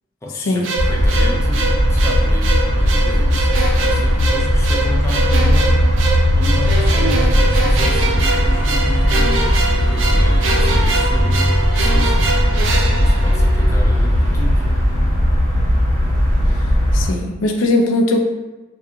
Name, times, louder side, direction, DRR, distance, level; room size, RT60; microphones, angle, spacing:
voice 1, 0.2-5.8 6.3-9.5 9.9-12.3 13.0-14.6, equal, 15° left, -2 dB, 0.3 m, -31 dB
sound 1, 0.6-13.9, right 3 dB, 75° right, 0.4 m, -23 dB
sound 2, 0.8-17.1, equal, 75° left, 1.1 m, -16 dB
sound 3, 7.9-13.4, right 1 dB, 45° left, 0.7 m, -35 dB
voice 2, 16.9-18.2, left 2 dB, 90° left, 2 dB, 0.4 m, -18 dB
2.3 x 2.3 x 2.8 m, 1.1 s
head